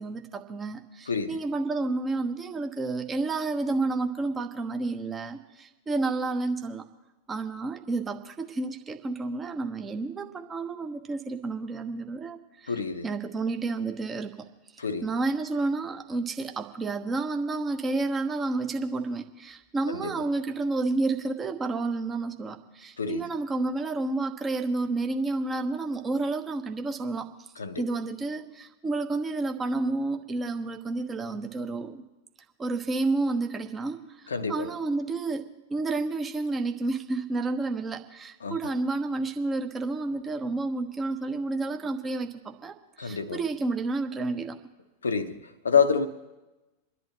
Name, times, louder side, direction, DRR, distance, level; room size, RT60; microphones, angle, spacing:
voice 1, 0.0-6.8 7.3-12.8 13.0-14.4 14.8-27.3 27.8-32.0 32.6-44.6, right 3 dB, 20° right, 1.2 m, -30 dB
voice 2, 1.1-1.4 12.7-13.1 14.8-15.1 19.9-20.2 23.0-23.2 27.6-27.8 34.3-34.7 38.4-38.6 43.0-43.4 45.0-46.1, left 6 dB, 70° left, 0.8 m, -27 dB
28.0 x 10.5 x 3.0 m
figure-of-eight pair, 90°, 0 cm